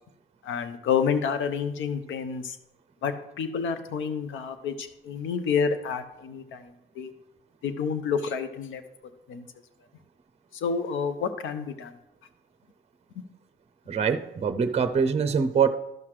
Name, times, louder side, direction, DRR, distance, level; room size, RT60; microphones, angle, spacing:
voice 1, 0.4-2.6 3.0-7.1 7.6-8.8 9.3-9.5 10.5-11.9, left 6 dB, 80° left, 10 dB, 0.8 m, -29 dB
voice 2, 13.9-15.7, right 6 dB, 30° right, 10 dB, 0.6 m, -24 dB
12.0 x 5.8 x 3.2 m, 0.89 s
cardioid pair, 90°, 20 cm